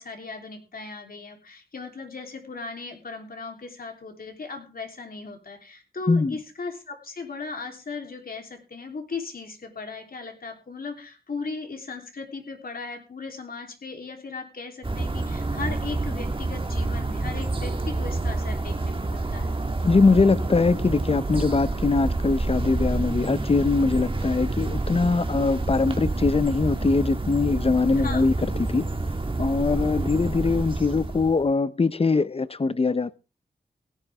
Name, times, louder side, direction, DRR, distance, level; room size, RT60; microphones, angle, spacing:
voice 1, 0.0-19.5 28.0-28.3, left 4 dB, 65° left, 3.4 m, -37 dB
sound 1, 14.8-31.5, right 2 dB, 35° right, 1.8 m, -28 dB
voice 2, 19.8-28.3 28.7-28.9 29.4-33.2, left 4 dB, 35° left, 0.8 m, -22 dB
17.0 x 10.5 x 3.5 m
cardioid pair, 60°, 16 cm